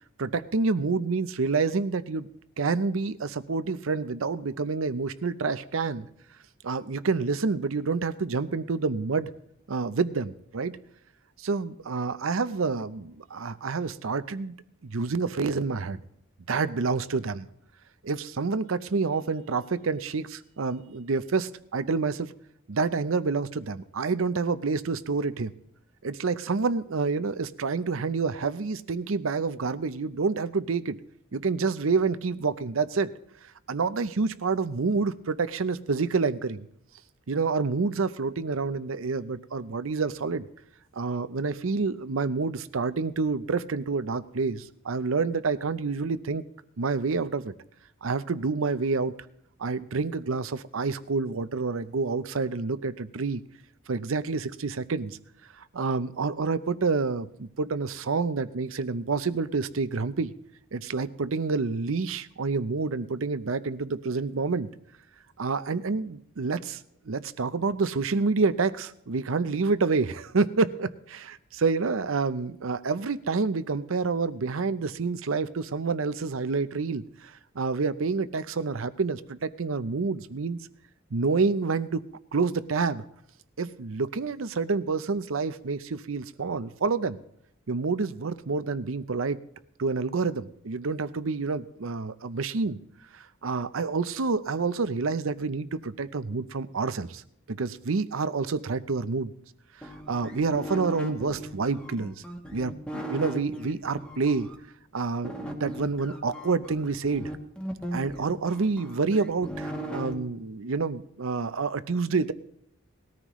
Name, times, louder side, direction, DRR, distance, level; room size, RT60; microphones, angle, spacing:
voice 1, 0.2-2.3 2.6-6.1 6.6-9.3 9.7-10.7 11.4-14.5 14.8-16.0 16.5-17.5 18.0-22.3 22.7-25.5 26.0-31.0 31.3-33.1 33.7-36.7 37.3-40.5 40.9-46.4 46.8-47.5 48.0-49.1 49.6-53.4 53.9-55.2 55.7-60.3 60.7-64.7 65.4-66.8 67.1-80.6 81.1-82.0 82.3-83.0 83.6-87.2 87.7-89.4 89.8-92.8 93.1-97.2 97.5-99.3 100.1-102.1 102.5-104.5 104.9-107.3 107.9-112.3, right 4 dB, 75° right, 14 dB, 0.6 m, -28 dB
sound 1, 99.8-104.5 105.2-110.1, equal, 5° left, 1.3 m, -37 dB
19.5 x 13.5 x 3.1 m, 0.72 s
head